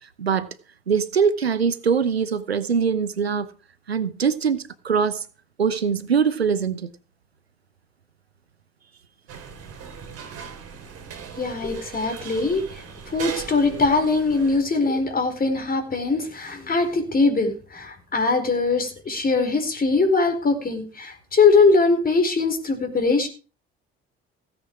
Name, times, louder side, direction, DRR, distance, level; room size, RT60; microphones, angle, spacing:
voice 1, 0.9-3.5 3.9-5.2 5.6-6.9, right 6 dB, 90° right, 0.8 m, -22 dB
sound 1, 9.3-14.6, right 7 dB, 50° right, 3.8 m, -38 dB
voice 2, 11.4-23.3, left 3 dB, 30° left, 4.6 m, -21 dB
16.5 x 9.0 x 4.7 m
figure-of-eight pair, 55°, 30 cm